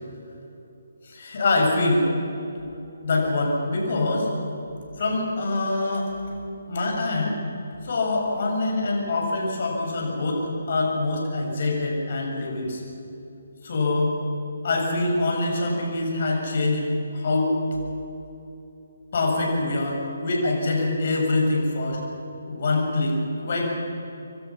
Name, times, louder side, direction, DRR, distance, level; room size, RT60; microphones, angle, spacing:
voice 1, 1.0-2.1 3.0-4.3 5.0-6.1 6.7-7.4 7.8-12.8 13.6-14.1 14.6-16.9 17.1-17.5 19.1-22.0 22.5-23.8, left 2 dB, 45° left, 0 dB, 6.8 m, -24 dB
28.0 x 23.5 x 5.9 m, 2.9 s
figure-of-eight pair, 140°, 0 cm